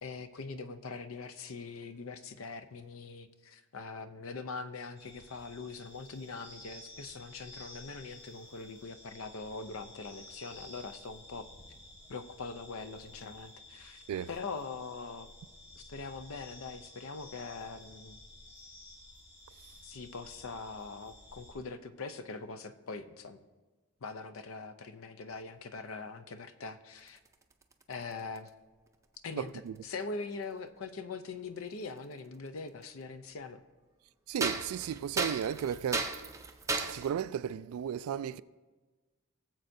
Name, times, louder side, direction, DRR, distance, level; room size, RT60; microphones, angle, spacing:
voice 1, 0.0-11.5 12.1-14.0 14.3-15.3 15.8-18.2 19.8-23.4 24.0-27.2 27.9-28.5 29.2-29.5 29.8-33.6, left 4 dB, 75° left, 0.6 m, -42 dB
sound 1, 4.9-21.5, left 1 dB, 50° left, 3.4 m, -53 dB
sound 2, 27.1-28.5 29.8-29.9 32.0-32.1 32.8-32.9 34.4-37.1, right 3 dB, 15° right, 0.4 m, -35 dB
voice 2, 29.4-29.7 34.3-36.1 36.8-38.4, right 9 dB, 90° right, 0.3 m, -34 dB
18.0 x 7.5 x 2.6 m
head